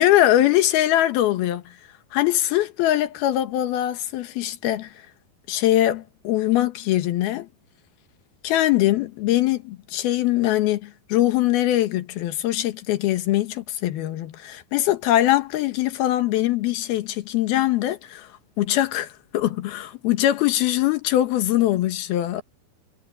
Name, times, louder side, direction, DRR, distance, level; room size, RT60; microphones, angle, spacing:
voice 1, 0.0-1.6 2.1-4.9 5.5-7.5 8.4-18.3 18.6-22.4, left 14 dB, 85° left, 3.3 m, -22 dB
omnidirectional pair, 4.3 m